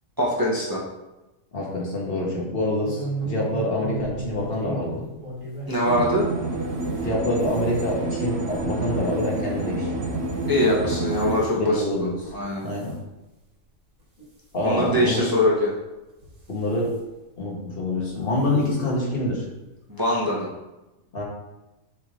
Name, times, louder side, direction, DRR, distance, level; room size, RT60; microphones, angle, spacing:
voice 1, 0.2-0.8 5.7-6.3 10.4-11.8 12.3-12.6 14.6-15.7 19.9-20.5, left 1 dB, 15° right, -5 dB, 1.0 m, -22 dB
voice 2, 1.5-5.0 7.0-10.1 11.5-12.9 14.5-15.3 16.5-16.9 17.4-19.4 20.2-20.3 21.1-21.2, left 1 dB, 45° left, -3 dB, 1.6 m, -26 dB
sound 1, 2.8-6.2 6.6-10.7 11.1-11.5 12.0-12.4 12.6-12.9 13.6-13.7 14.0-14.1 15.2-15.3 16.1-16.9 18.1-18.3 18.6-18.7 19.0-19.1, right 2 dB, 80° right, 2.0 m, -36 dB
sound 2, 5.8-11.4, right 2 dB, 55° right, 1.1 m, -28 dB
7.0 x 3.7 x 3.8 m, 1.0 s
omnidirectional pair, 1.4 m